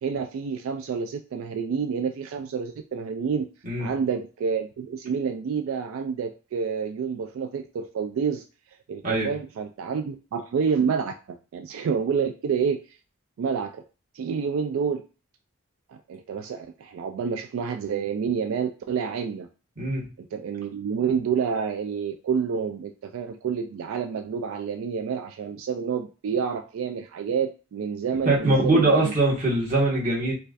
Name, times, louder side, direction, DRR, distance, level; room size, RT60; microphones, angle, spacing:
voice 1, 0.0-3.5 3.8-8.4 8.9-12.8 13.4-13.8 14.1-15.0 15.9-19.5 20.3-28.9, right 6 dB, 85° right, 5 dB, 0.3 m, -28 dB
voice 2, 28.2-30.3, right 2 dB, 40° right, -5 dB, 1.4 m, -22 dB
4.4 x 2.3 x 2.5 m, 0.34 s
head